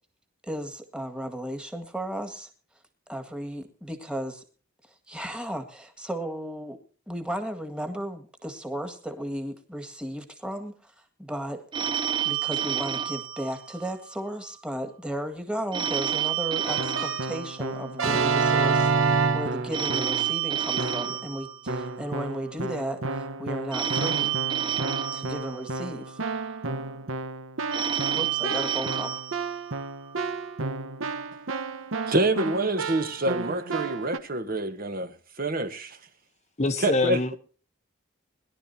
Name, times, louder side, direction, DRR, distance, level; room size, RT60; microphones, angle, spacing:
voice 1, 0.4-2.5 3.1-4.4 5.1-6.8 7.1-10.7 11.2-11.6 12.2-24.3 25.1-26.2 28.1-29.2, right 1 dB, 5° right, 2.0 m, -34 dB
Telephone, 11.7-14.2 15.7-18.2 19.7-22.2 23.7-26.2 27.7-30.2, right 9 dB, 25° right, 0.7 m, -30 dB
Keyboard (musical), 16.7-20.3 20.8-21.3 21.7-34.2, right 4 dB, 80° right, 1.1 m, -30 dB
voice 2, 32.1-35.1 35.4-35.9 36.8-37.2, right 2 dB, 45° right, 1.3 m, -26 dB
voice 3, 36.6-37.4, left 2 dB, 35° left, 1.0 m, -24 dB
22.0 x 12.0 x 2.8 m
head